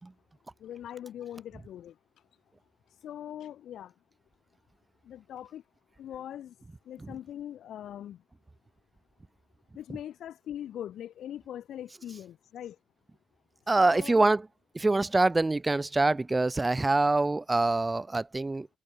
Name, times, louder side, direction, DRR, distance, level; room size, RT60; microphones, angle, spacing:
voice 1, 0.6-1.9 3.0-3.9 5.0-5.6 6.0-6.5 6.9-8.2 9.8-12.8 13.8-14.3, left 11 dB, 70° left, 5.3 m, -41 dB
voice 2, 13.7-14.5 14.7-18.7, right 2 dB, 20° right, 0.8 m, -25 dB
cardioid pair, 90°, 0 cm